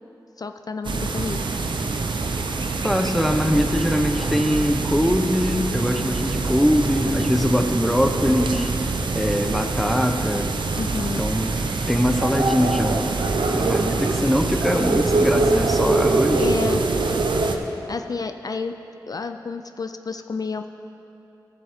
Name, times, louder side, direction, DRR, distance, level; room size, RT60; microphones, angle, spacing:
voice 1, 0.4-1.4 10.8-11.2 16.4-16.8 17.9-18.8 19.0-20.7, left 4 dB, 55° left, 7 dB, 0.3 m, -30 dB
sound 1, 0.8-17.6, right 3 dB, 90° right, 0.6 m, -24 dB
voice 2, 2.8-8.7 9.1-10.5 11.2-11.5 11.9-13.2 13.5-16.5, equal, ahead, 5 dB, 0.6 m, -22 dB
14.5 x 7.2 x 3.5 m, 2.9 s
wide cardioid pair, 75°, 8 cm